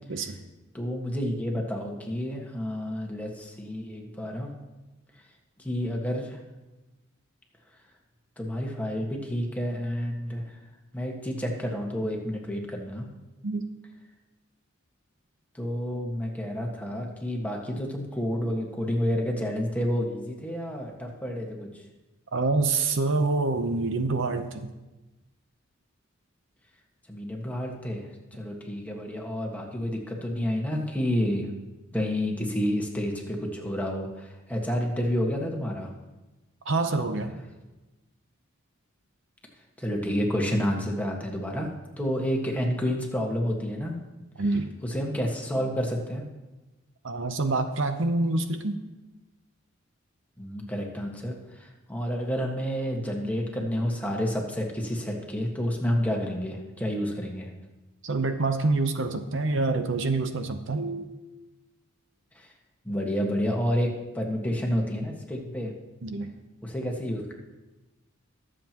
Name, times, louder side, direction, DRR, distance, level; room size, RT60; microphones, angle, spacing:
voice 1, 0.1-0.4 13.4-13.7 22.3-24.7 36.6-37.3 44.4-44.7 47.0-48.8 58.0-61.1 66.0-66.3, right 3 dB, 65° right, 8 dB, 0.8 m, -26 dB
voice 2, 0.7-4.5 5.6-6.4 8.4-10.6 10.9-13.1 15.6-21.8 27.1-31.5 31.9-35.9 39.8-41.7 42.0-44.0 44.8-46.3 50.4-57.5 62.4-62.5 62.9-65.7 66.6-67.3, equal, 5° left, 0 dB, 1.6 m, -29 dB
22.0 x 7.6 x 3.0 m, 1.1 s
head